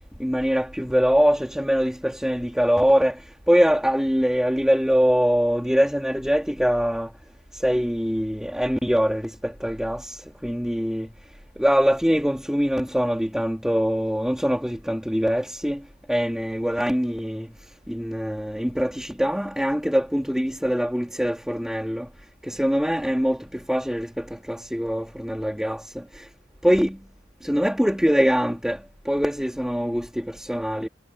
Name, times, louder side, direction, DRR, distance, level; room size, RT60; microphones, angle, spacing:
voice 1, 0.2-7.1 7.5-11.1 11.6-17.5 17.9-22.1 22.4-26.3 26.6-27.0 27.4-30.9, equal, 5° right, 2.5 m, -23 dB
head